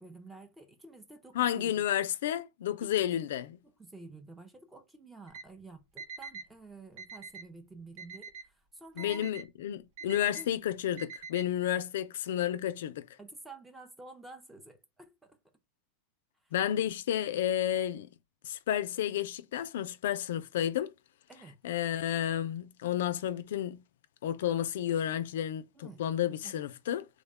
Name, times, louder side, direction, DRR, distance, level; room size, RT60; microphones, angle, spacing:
voice 1, 0.0-1.8 2.8-3.3 3.8-9.3 10.0-10.5 13.2-15.4 21.3-21.6 25.7-26.0 26.4-26.5, right 2 dB, 5° right, 0.5 m, -50 dB
voice 2, 1.3-3.5 9.0-13.1 16.5-18.1 18.4-20.9 21.6-23.8 24.2-27.1, left 11 dB, 75° left, 0.4 m, -31 dB
Alarm, 5.3-5.4 6.0-6.5 7.0-7.5 8.0-8.5 9.0-9.4 10.0-10.5 11.0-11.4, right 5 dB, 50° right, 0.8 m, -44 dB
3.5 x 2.1 x 3.4 m
supercardioid pair, 165°, 0 cm